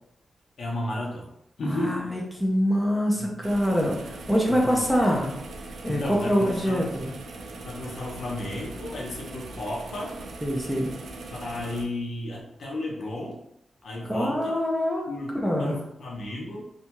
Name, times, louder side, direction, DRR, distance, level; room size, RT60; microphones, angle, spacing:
voice 1, 0.6-1.3 1.6-2.0 3.1-3.3 4.5-5.0 5.9-6.9 7.6-10.2 11.3-13.4 13.8-14.6 15.1-16.6, left 1 dB, 65° left, -2 dB, 0.6 m, -33 dB
voice 2, 1.7-5.3 5.8-7.1 10.4-10.9 14.1-15.1 15.4-15.8, equal, ahead, -3 dB, 0.4 m, -25 dB
sound 1, 3.4-11.8, right 2 dB, 80° right, 0.3 m, -40 dB
2.6 x 2.2 x 2.9 m, 0.78 s
wide cardioid pair, 175°, 0 cm